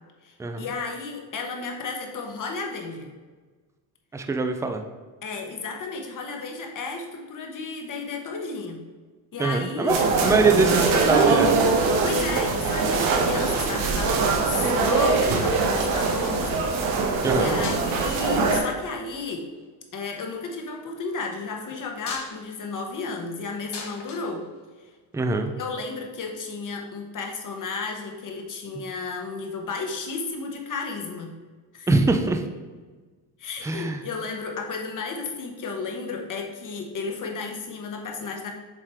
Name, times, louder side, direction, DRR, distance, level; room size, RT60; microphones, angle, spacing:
voice 1, 0.2-3.1 5.2-8.8 9.3-10.0 10.4-10.5 12.0-17.0 17.3-19.4 19.9-24.4 25.6-31.3 31.7-31.9 33.4-38.5, left 4 dB, 45° left, 2 dB, 1.2 m, -33 dB
voice 2, 4.1-4.8 9.4-11.5 17.2-17.5 25.1-25.5 28.7-28.8 31.9-32.4 33.6-34.0, right 3 dB, 5° right, 5 dB, 0.4 m, -23 dB
sound 1, 9.9-18.6, right 4 dB, 90° right, 1.2 m, -22 dB
sound 2, 17.6-18.2 19.2-19.7 21.7-25.2 26.5-26.6, left 4 dB, 60° left, 1.4 m, -41 dB
7.3 x 3.3 x 4.4 m, 1.3 s
cardioid pair, 120°, 45 cm